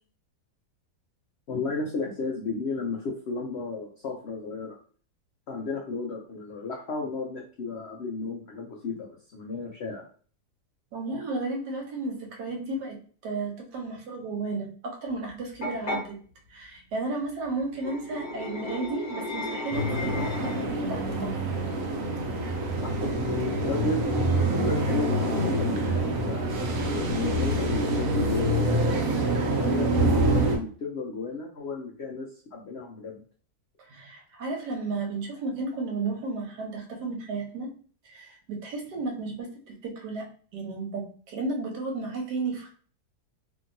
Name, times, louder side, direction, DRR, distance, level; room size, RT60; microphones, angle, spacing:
voice 1, 1.5-4.8 5.5-10.0 22.8-26.0 26.3-26.4 27.1-29.1 29.5-33.2, left 4 dB, 75° left, -1 dB, 0.6 m, -34 dB
voice 2, 10.9-13.0 13.2-16.2 16.5-21.5 33.9-37.7 38.0-40.3 40.5-42.7, right 3 dB, 80° right, 1 dB, 1.4 m, -33 dB
sound 1, 15.6-16.0 17.7-20.8, left 1 dB, 45° left, 1.1 m, -34 dB
sound 2, 19.7-30.6, right 1 dB, 65° right, 1.0 m, -26 dB
2.8 x 2.7 x 2.6 m, 0.43 s
omnidirectional pair, 1.8 m